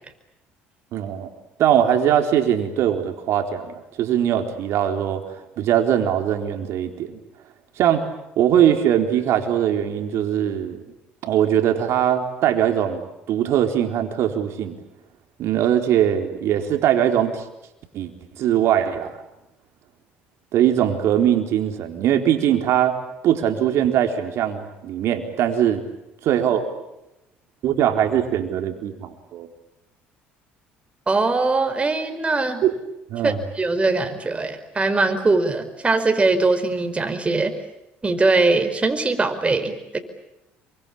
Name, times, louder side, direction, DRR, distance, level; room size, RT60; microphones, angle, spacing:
voice 1, 0.9-1.3 1.6-7.2 7.8-8.1 8.4-10.8 11.2-14.8 15.4-17.4 17.9-18.1 18.4-19.2 20.5-23.0 23.2-25.8 26.2-26.7 27.6-29.5 32.6-32.7 33.1-33.4, right 10 dB, 65° right, 5 dB, 4.2 m, -21 dB
voice 2, 31.1-32.6 33.2-37.5 38.0-40.0, right 3 dB, 25° right, 8 dB, 5.2 m, -21 dB
26.5 x 24.5 x 8.8 m, 0.89 s
hypercardioid pair, 70°, 5 cm